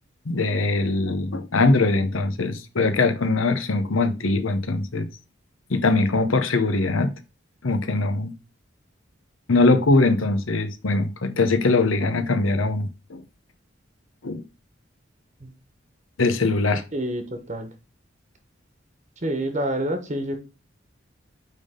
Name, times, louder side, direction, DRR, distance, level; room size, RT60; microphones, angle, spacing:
voice 1, 0.2-5.1 5.7-7.1 7.6-8.3 9.5-13.2 14.2-14.4 16.2-16.8, left 3 dB, 85° left, 0.9 m, -21 dB
voice 2, 16.9-17.2 17.5-17.7 19.2-20.4, right 1 dB, 35° right, 1.2 m, -27 dB
9.2 x 3.7 x 3.8 m
head